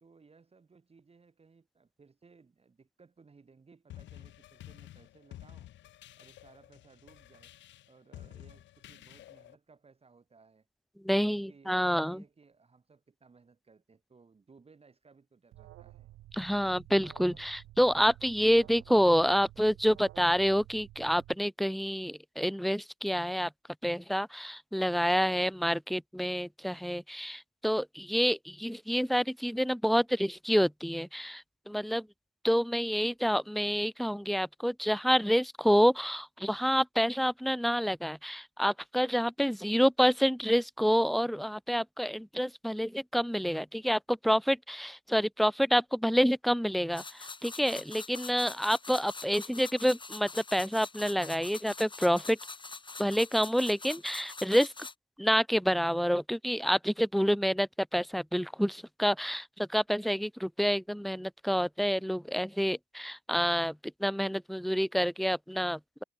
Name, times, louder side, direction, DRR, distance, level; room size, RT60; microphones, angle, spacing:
voice 1, 0.0-5.7 6.2-7.5 7.9-10.7 11.1-16.1, right 4 dB, 30° right, 2.8 m, -60 dB
sound 1, 3.9-9.5, left 13 dB, 70° left, 0.6 m, -51 dB
voice 2, 11.0-12.2 16.3-23.5 23.8-32.1 32.4-52.4 53.0-54.7 55.2-66.0, equal, ahead, 0.3 m, -28 dB
Alarm, 15.5-21.3, right 15 dB, 85° right, 1.5 m, -52 dB
sound 2, 46.9-54.9, left 4 dB, 25° left, 2.1 m, -44 dB
cardioid pair, 90°, 20 cm